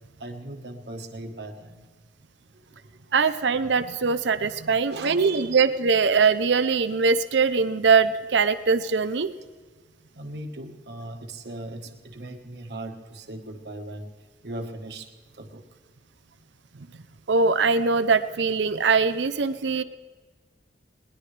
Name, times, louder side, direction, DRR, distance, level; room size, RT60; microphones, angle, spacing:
voice 1, 0.2-1.8 2.7-2.8 3.2-3.4 4.5-5.5 10.1-14.1 14.4-15.1 15.3-15.6, right 2 dB, 65° right, 5 dB, 1.4 m, -38 dB
voice 2, 3.1-9.3 17.3-19.8, right 5 dB, 85° right, 12 dB, 0.6 m, -22 dB
20.5 x 19.5 x 3.3 m, 1.4 s
head